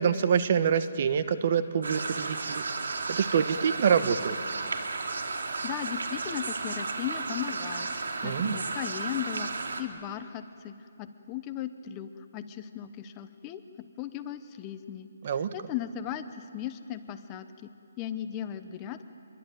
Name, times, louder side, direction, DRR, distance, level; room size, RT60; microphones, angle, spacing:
voice 1, 0.0-2.6 3.1-4.3 8.2-8.6 15.2-15.5, right 7 dB, 40° right, 12 dB, 1.1 m, -26 dB
sound 1, 1.8-9.8, right 3 dB, 85° right, 2.9 m, -33 dB
voice 2, 5.6-9.5 9.8-15.1 15.5-17.7 18.0-19.0, left 10 dB, 15° left, 9 dB, 0.9 m, -37 dB
26.5 x 22.5 x 9.2 m, 2.4 s
hypercardioid pair, 170°, 0 cm